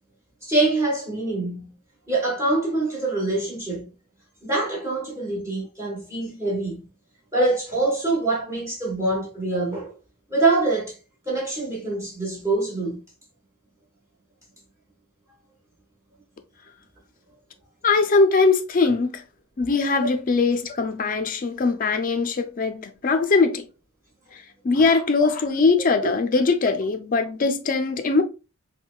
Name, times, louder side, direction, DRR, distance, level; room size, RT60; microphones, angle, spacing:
voice 1, 0.4-1.7 2.1-3.9 4.4-6.8 7.3-9.9 10.3-11.0 11.2-13.0 24.7-25.0, right 2 dB, 15° right, 1.2 m, -25 dB
voice 2, 17.8-19.2 19.6-23.7 24.3-28.2, left 4 dB, 40° left, 0.4 m, -21 dB
5.4 x 2.2 x 2.3 m
head